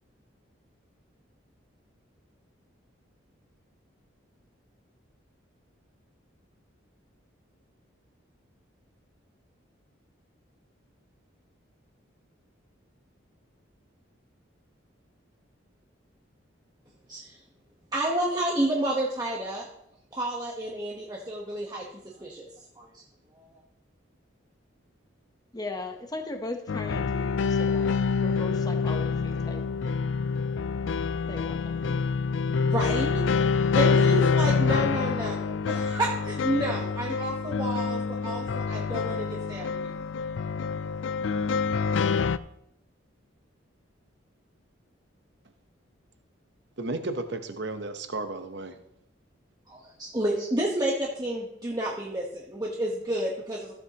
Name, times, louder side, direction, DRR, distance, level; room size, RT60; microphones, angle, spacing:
voice 1, 17.9-19.7 20.1-22.5 22.8-23.0 23.4-23.5 32.6-33.2 33.7-39.7 49.7-53.7, right 1 dB, 20° right, 1.1 m, -30 dB
voice 2, 25.5-29.6 31.2-31.9, left 2 dB, 20° left, 0.9 m, -38 dB
sound 1, 26.7-42.4, left 5 dB, 70° left, 0.4 m, -26 dB
voice 3, 46.8-48.8, right 2 dB, 60° right, 0.9 m, -33 dB
15.0 x 8.0 x 2.9 m
head